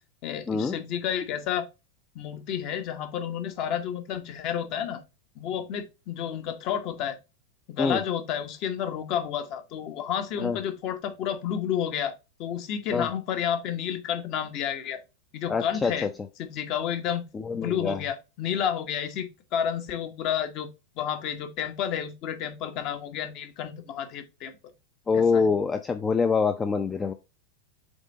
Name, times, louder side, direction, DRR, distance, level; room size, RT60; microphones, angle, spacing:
voice 1, 0.2-1.7 2.1-5.0 5.3-7.2 7.7-12.1 12.4-15.0 15.3-16.1 16.4-17.2 17.5-20.7 21.0-24.5 25.1-25.5, left 9 dB, 40° left, 1.1 m, -30 dB
voice 2, 15.5-16.1 17.3-18.0 25.1-27.1, left 5 dB, 15° left, 0.5 m, -25 dB
8.0 x 3.3 x 4.1 m
figure-of-eight pair, 90°, 0 cm